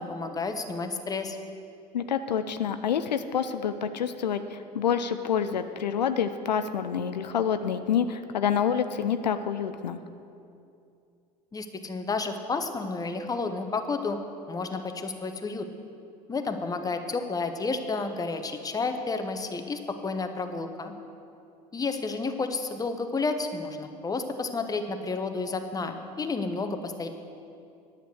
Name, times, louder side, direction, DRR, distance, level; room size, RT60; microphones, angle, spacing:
voice 1, 0.0-1.4 11.5-14.2 14.5-15.7 16.3-20.9 21.7-27.1, left 3 dB, 15° left, 7 dB, 0.9 m, -31 dB
voice 2, 1.9-10.0, left 8 dB, 80° left, 10 dB, 0.5 m, -27 dB
10.5 x 6.7 x 7.8 m, 2.6 s
figure-of-eight pair, 75°, 21 cm